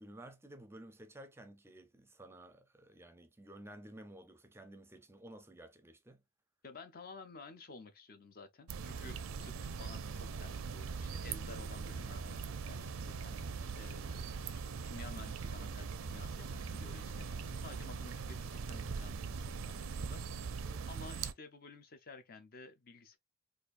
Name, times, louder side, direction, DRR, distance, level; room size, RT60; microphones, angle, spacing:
voice 1, 0.0-6.2 20.7-20.9, right 1 dB, 10° right, 0.5 m, -53 dB
voice 2, 6.6-13.5 13.8-23.2, left 4 dB, 45° left, 0.6 m, -53 dB
sound 1, 8.7-21.3, right 5 dB, 75° right, 0.5 m, -41 dB
4.2 x 2.5 x 2.5 m
head